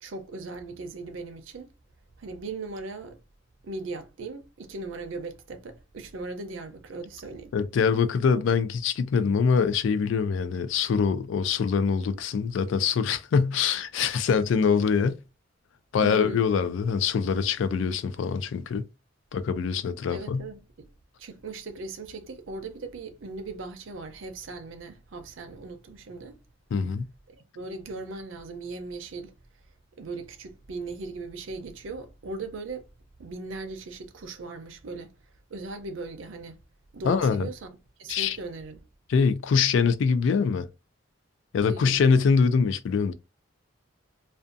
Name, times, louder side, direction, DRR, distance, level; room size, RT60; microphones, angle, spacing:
voice 1, 0.0-1.7 2.2-3.2 3.6-7.6 16.0-16.4 20.1-20.9 21.2-26.4 27.3-29.3 30.0-32.8 33.2-35.2 35.5-36.6 36.9-37.7 38.0-38.9 41.6-42.0, right 3 dB, 75° right, 0.5 m, -38 dB
voice 2, 7.5-15.2 15.9-18.8 19.3-20.4 26.7-27.0 37.0-37.5 38.1-38.4 39.1-40.7 41.5-43.1, left 5 dB, 70° left, 0.3 m, -24 dB
2.5 x 2.2 x 2.5 m
head